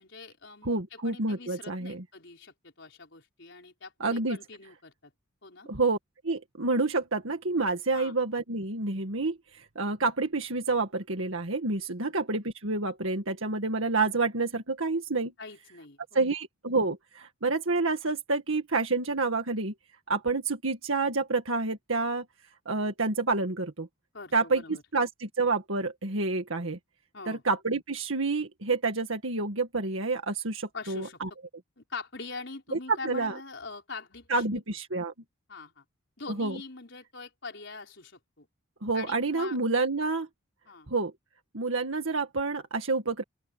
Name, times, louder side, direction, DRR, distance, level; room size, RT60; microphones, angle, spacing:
voice 1, 0.0-5.1 5.4-5.7 7.9-8.2 12.0-12.1 15.4-16.2 24.1-24.8 27.1-27.4 30.7-31.2 31.8-34.6 35.5-35.8 36.2-38.5 38.9-39.6 40.7-40.9, left 4 dB, 60° left, 4.9 m, -43 dB
voice 2, 0.6-2.0 4.0-4.4 5.7-6.0 6.2-15.3 16.1-19.7 20.1-22.3 22.7-23.9 24.3-26.8 27.3-31.3 32.7-33.4 34.3-35.1 36.4-36.6 38.8-40.3 40.9-41.1 41.5-43.2, right 3 dB, 80° right, 1.9 m, -28 dB
open air
head